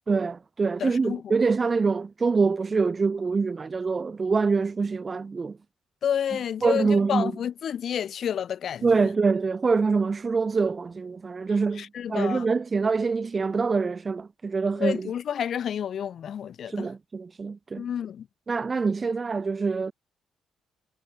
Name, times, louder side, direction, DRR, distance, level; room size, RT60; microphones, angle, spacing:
voice 1, 0.1-5.6 6.6-7.3 8.8-15.1 16.7-17.9 18.5-19.9, right 4 dB, 35° right, 1.8 m, -25 dB
voice 2, 0.8-1.4 6.0-9.1 11.7-12.5 14.8-16.9 17.8-18.3, left 9 dB, 60° left, 3.6 m, -30 dB
cardioid pair, 90°, 0 cm